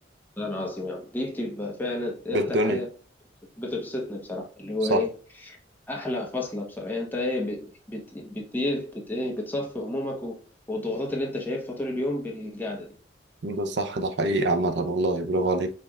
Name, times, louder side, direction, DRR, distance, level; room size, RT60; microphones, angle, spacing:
voice 1, 0.4-2.9 3.6-5.1 5.4-5.6 5.9-10.4 10.7-12.9, left 2 dB, 10° left, 1.0 m, -31 dB
voice 2, 2.3-2.8 4.9-5.0 13.4-15.7, right 1 dB, 70° right, 0.6 m, -25 dB
5.1 x 3.4 x 2.3 m
head